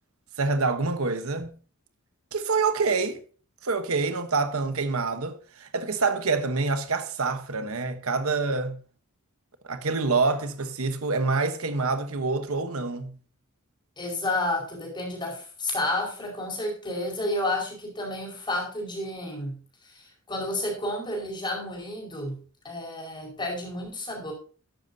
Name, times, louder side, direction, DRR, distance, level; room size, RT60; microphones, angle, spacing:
voice 1, 0.4-1.5 2.3-3.2 3.6-8.8 9.6-13.1, right 4 dB, 75° right, 1.1 m, -26 dB
voice 2, 14.0-19.6 19.8-22.4 22.6-24.3, left 1 dB, 20° left, 5.1 m, -31 dB
13.0 x 10.5 x 2.8 m
head